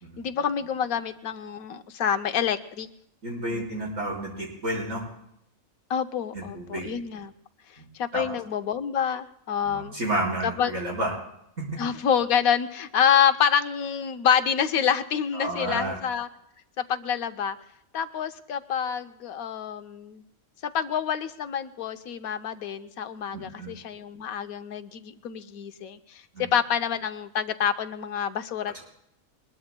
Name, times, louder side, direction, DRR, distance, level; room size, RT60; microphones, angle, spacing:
voice 1, 0.2-2.9 3.5-3.8 5.9-7.3 7.7-9.9 10.4-10.7 11.8-16.3 16.8-17.6 17.9-20.2 20.6-28.8, left 8 dB, 85° left, 10 dB, 1.2 m, -27 dB
voice 2, 3.2-5.0 6.3-6.8 7.8-7.9 8.1-8.2 9.6-11.1 11.6-11.7 15.3-16.0 23.3-23.7 26.3-26.5, right 1 dB, 65° right, -4 dB, 5.0 m, -31 dB
22.0 x 21.0 x 2.2 m, 0.77 s
omnidirectional pair, 1.5 m